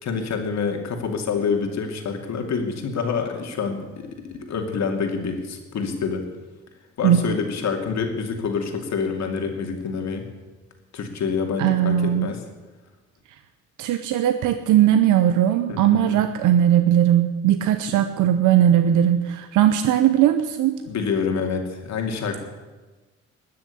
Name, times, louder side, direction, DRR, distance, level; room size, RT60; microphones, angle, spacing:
voice 1, 0.0-6.3 7.0-10.3 10.9-12.4 15.7-16.2 20.9-22.4, left 5 dB, 65° left, 3 dB, 2.5 m, -27 dB
voice 2, 11.6-12.3 13.8-20.8, right 11 dB, 90° right, 8 dB, 0.8 m, -19 dB
20.0 x 6.7 x 8.4 m, 1.2 s
cardioid pair, 90°, 30 cm